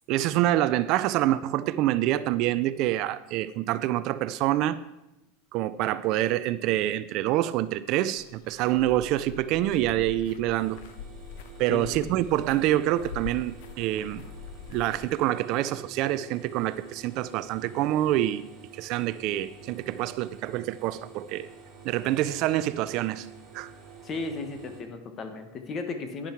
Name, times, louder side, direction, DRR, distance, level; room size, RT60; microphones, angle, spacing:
voice 1, 0.1-4.8 5.5-10.8 11.6-14.2 14.7-18.4 18.7-21.5 21.8-23.3 23.5-23.7, right 14 dB, 45° right, 0.4 m, -26 dB
sound 1, 8.2-15.1, left 7 dB, 60° left, 0.9 m, -44 dB
sound 2, 10.5-24.8, right 5 dB, 15° right, 2.9 m, -49 dB
voice 2, 24.0-26.3, left 3 dB, 25° left, 1.3 m, -35 dB
11.5 x 10.0 x 4.6 m
supercardioid pair, 155°, 0 cm